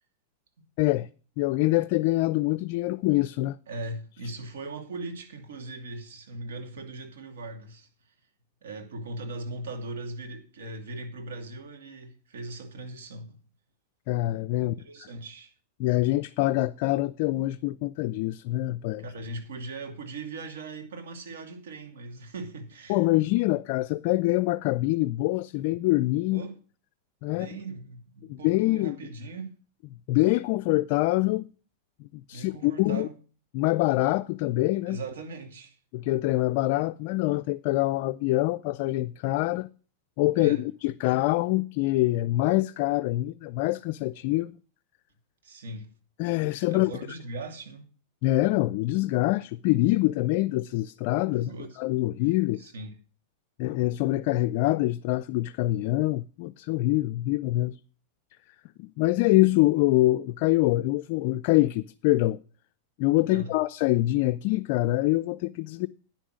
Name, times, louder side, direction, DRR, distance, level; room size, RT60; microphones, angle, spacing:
voice 1, 0.8-1.1 1.4-3.6 14.1-14.8 15.8-19.1 22.9-26.4 27.2-27.5 28.3-29.0 30.1-31.5 32.3-33.1 33.5-35.0 35.9-39.7 40.2-44.5 46.2-46.9 48.2-51.5 51.8-52.7 53.6-57.8 58.8-62.4 63.0-65.9, left 18 dB, 50° left, 0.4 m, -25 dB
voice 2, 3.7-7.9 8.6-13.4 14.6-15.5 19.0-23.0 26.3-26.6 27.3-29.5 32.3-33.1 34.9-35.7 40.4-40.6 45.4-45.9 46.7-47.9 51.3-51.8 52.6-52.9 63.3-63.5, right 2 dB, 90° right, 2.4 m, -39 dB
10.0 x 6.3 x 6.3 m
supercardioid pair, 140°, 0 cm